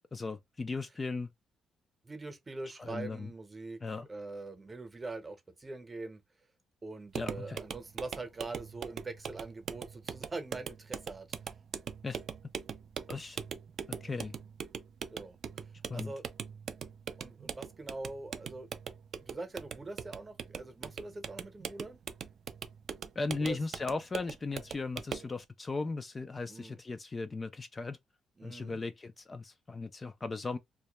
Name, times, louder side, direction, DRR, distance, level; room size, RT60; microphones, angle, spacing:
voice 1, 0.1-1.3 2.8-3.3 3.8-4.1 7.2-7.6 12.0-12.2 13.1-13.4 13.9-14.3 15.9-16.1 23.2-28.0 28.4-30.6, left 3 dB, 30° left, 0.3 m, -37 dB
voice 2, 2.0-3.8 4.1-6.2 6.8-11.3 15.1-15.4 15.9-16.2 17.2-18.7 19.2-22.0 23.4-23.6 26.5-26.8 28.4-28.8, right 3 dB, 25° right, 0.8 m, -43 dB
sound 1, 7.1-25.3, right 7 dB, 60° right, 0.3 m, -42 dB
2.2 x 2.1 x 2.9 m
cardioid pair, 90°, 0 cm